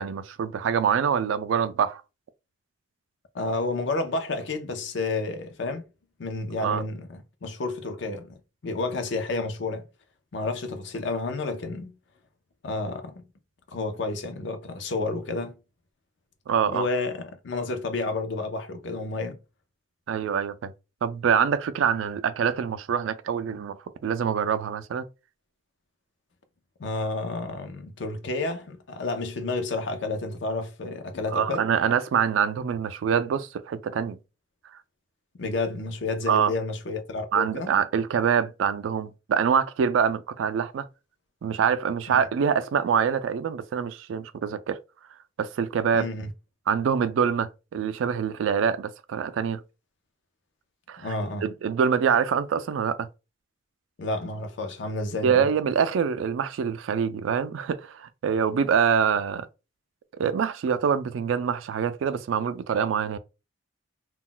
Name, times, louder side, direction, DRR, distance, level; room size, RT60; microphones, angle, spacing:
voice 1, 0.0-2.0 6.6-6.8 16.5-16.9 20.1-20.7 21.0-23.8 24.0-25.1 31.3-34.2 36.3-36.5 37.3-40.9 41.4-44.8 45.4-46.1 46.7-49.6 50.9-51.1 51.4-53.1 55.2-59.5 60.1-63.2, right 7 dB, 90° right, 0.3 m, -25 dB
voice 2, 3.3-5.8 6.2-8.3 8.6-9.8 10.3-12.0 12.6-13.2 13.7-15.5 16.7-19.4 26.8-31.6 35.4-37.7 45.9-46.3 51.0-51.5 54.0-55.5, left 3 dB, 70° left, 0.5 m, -30 dB
2.3 x 2.1 x 3.7 m
head